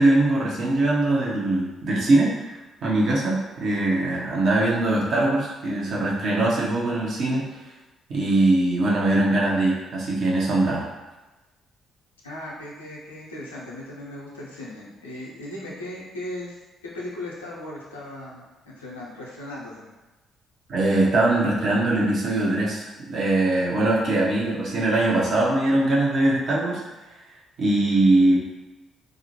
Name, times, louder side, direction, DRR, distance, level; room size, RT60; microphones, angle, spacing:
voice 1, 0.0-2.5 2.8-7.5 8.1-10.9 20.7-26.8 27.6-28.4, right 2 dB, 55° right, -4 dB, 0.6 m, -21 dB
voice 2, 12.2-16.5 16.8-19.9, left 1 dB, 80° left, -5 dB, 0.5 m, -37 dB
2.4 x 2.0 x 2.8 m, 1.1 s
figure-of-eight pair, 45°, 0 cm